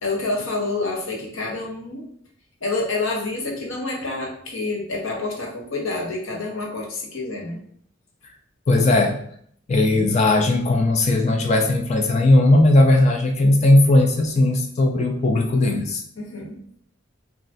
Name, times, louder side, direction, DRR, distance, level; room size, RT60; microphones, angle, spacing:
voice 1, 0.0-2.0 2.6-7.6 16.2-16.6, left 3 dB, 75° left, -1 dB, 0.8 m, -28 dB
voice 2, 8.7-9.2 9.7-16.0, left 2 dB, 35° left, 4 dB, 0.3 m, -17 dB
3.1 x 2.3 x 2.6 m, 0.63 s
head